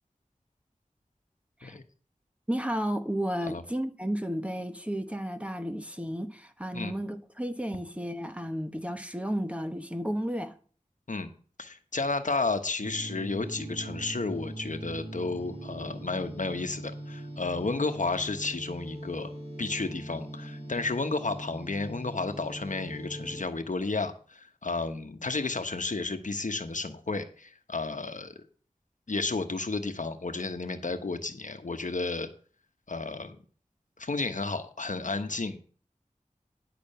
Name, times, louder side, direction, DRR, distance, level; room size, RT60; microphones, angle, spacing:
voice 1, 2.5-10.5, equal, 10° right, 1.1 m, -33 dB
voice 2, 11.6-19.3 19.6-28.4 29.1-32.3 32.9-33.4 34.0-35.6, left 3 dB, 75° left, 1.1 m, -32 dB
sound 1, 12.8-23.4, right 1 dB, 45° right, 3.9 m, -41 dB
10.5 x 6.0 x 5.5 m
wide cardioid pair, 60°, 13 cm